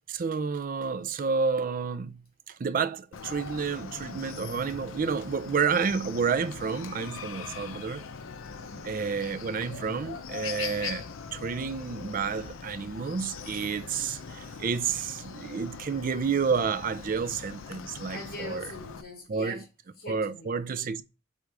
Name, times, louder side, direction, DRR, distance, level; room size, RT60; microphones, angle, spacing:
voice 1, 0.1-8.0 8.8-18.6 19.3-19.6 20.1-21.0, right 5 dB, 45° right, 0.4 m, -30 dB
Chicken rooster, 3.1-19.0, left 5 dB, 80° left, 0.6 m, -41 dB
voice 2, 8.5-9.0 18.1-19.7 19.9-20.5, left 1 dB, 50° left, 2.6 m, -43 dB
6.5 x 3.5 x 4.7 m
head